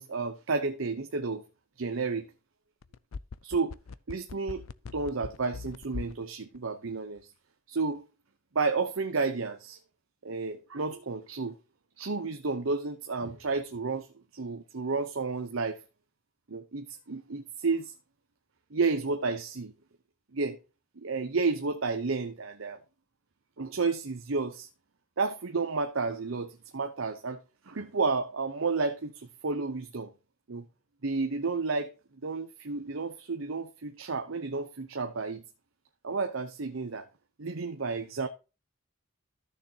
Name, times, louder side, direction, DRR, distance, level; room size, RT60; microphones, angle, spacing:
voice 1, 0.0-1.4 1.8-2.3 3.4-3.8 4.1-4.6 4.9-7.3 7.7-8.1 8.5-9.8 10.2-11.6 12.0-14.1 14.3-15.8 16.5-17.9 18.7-19.7 20.3-20.6 21.0-22.8 23.6-24.7 25.2-27.4 27.7-30.1 30.5-30.6 31.0-31.9 32.2-35.4 36.0-37.1 37.4-38.3, right 4 dB, 75° right, 0.8 m, -31 dB
sound 1, 2.8-6.2 6.5-6.6, left 4 dB, 85° left, 0.5 m, -40 dB
14.0 x 6.6 x 2.8 m
head